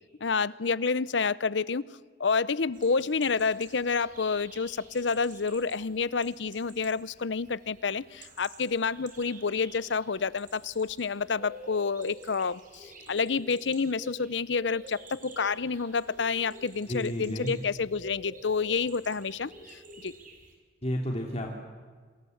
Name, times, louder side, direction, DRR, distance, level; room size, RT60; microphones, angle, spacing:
voice 1, 0.2-1.8 2.2-20.1, left 5 dB, 75° left, 19 dB, 0.7 m, -29 dB
sound 1, 2.7-20.5, right 2 dB, 45° right, 5.3 m, -50 dB
voice 2, 16.9-17.5 20.8-21.5, equal, 35° left, 1 dB, 2.8 m, -31 dB
27.5 x 27.0 x 7.9 m, 1.5 s
head